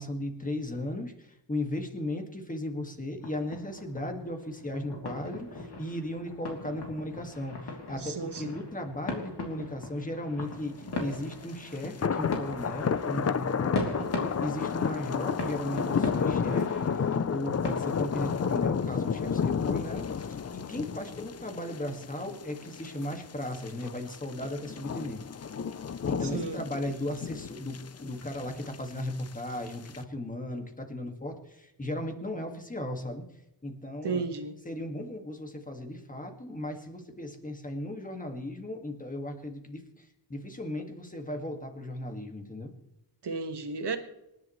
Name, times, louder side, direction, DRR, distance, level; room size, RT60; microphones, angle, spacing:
voice 1, 0.0-25.2 26.1-33.2 33.6-34.2 34.7-42.7, left 1 dB, 20° left, 2.0 m, -36 dB
sound 1, 3.2-17.9, left 2 dB, 70° left, 3.1 m, -39 dB
voice 2, 8.0-8.6 26.2-26.6 34.0-34.5 43.2-44.0, right 4 dB, 75° right, 1.7 m, -33 dB
sound 2, 11.4-11.5 11.8-30.0, left 6 dB, 40° left, 0.5 m, -32 dB
27.0 x 11.0 x 3.2 m
wide cardioid pair, 155°, 42 cm